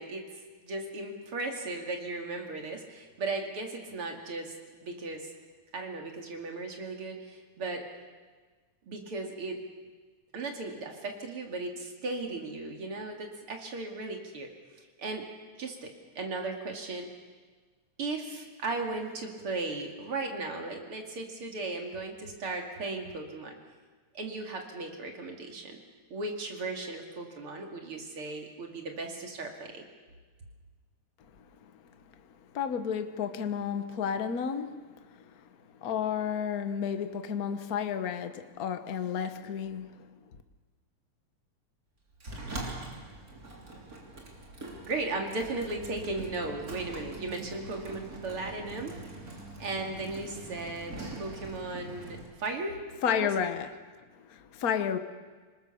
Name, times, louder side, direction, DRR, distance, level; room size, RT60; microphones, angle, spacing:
voice 1, 0.0-4.5 4.8-5.3 5.7-7.9 8.9-9.6 10.3-14.5 14.8-15.2 15.6-17.1 18.0-23.6 24.1-25.8 26.1-29.9 44.8-49.1 49.6-52.8 53.1-53.4, right 3 dB, 50° right, 3.2 m, -36 dB
voice 2, 32.5-35.1 35.8-40.1 53.0-53.7 54.2-55.0, left 7 dB, 75° left, 0.8 m, -32 dB
Sliding door, 42.2-52.3, right 2 dB, 30° right, 3.5 m, -43 dB
26.0 x 20.5 x 7.0 m
omnidirectional pair, 3.3 m